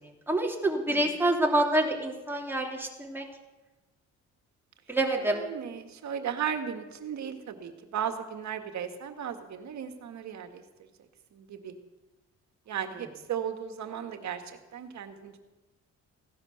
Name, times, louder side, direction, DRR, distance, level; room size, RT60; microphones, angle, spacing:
voice 1, 0.0-3.2 4.9-5.4, right 1 dB, 5° right, 0 dB, 3.0 m, -27 dB
voice 2, 5.3-10.6 11.3-11.7 12.7-14.4 14.7-15.3, right 8 dB, 65° right, 7 dB, 1.9 m, -36 dB
16.5 x 11.0 x 6.8 m, 1.1 s
cardioid pair, 90°, 30 cm